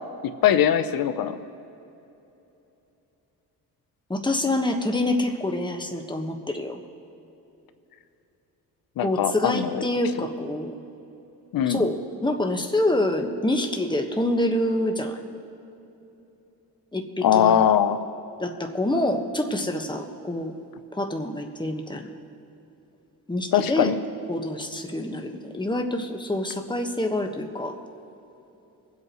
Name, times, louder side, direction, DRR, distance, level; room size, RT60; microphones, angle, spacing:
voice 1, 0.4-1.4 9.0-9.8 11.5-11.9 17.2-18.0 23.5-24.0, left 9 dB, 65° left, 10 dB, 0.8 m, -21 dB
voice 2, 4.1-6.8 9.0-10.7 11.7-15.2 16.9-17.7 18.4-20.5 20.9-22.1 23.3-23.9 24.3-27.7, left 1 dB, 10° left, 3 dB, 1.4 m, -26 dB
24.5 x 8.3 x 3.1 m, 2.9 s
cardioid pair, 80°, 38 cm